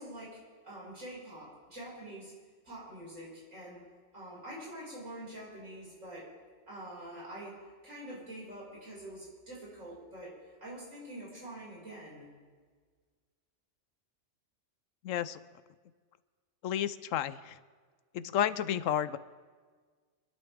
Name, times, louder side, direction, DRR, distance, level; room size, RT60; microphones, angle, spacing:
voice 1, 0.0-2.3 2.6-3.8 4.1-6.3 6.7-12.3, right 1 dB, 85° right, -6 dB, 6.0 m, -46 dB
voice 2, 15.0-15.4 16.6-17.6 18.1-19.2, left 10 dB, 85° left, 15 dB, 1.0 m, -31 dB
26.5 x 12.0 x 3.6 m, 1.5 s
omnidirectional pair, 1.3 m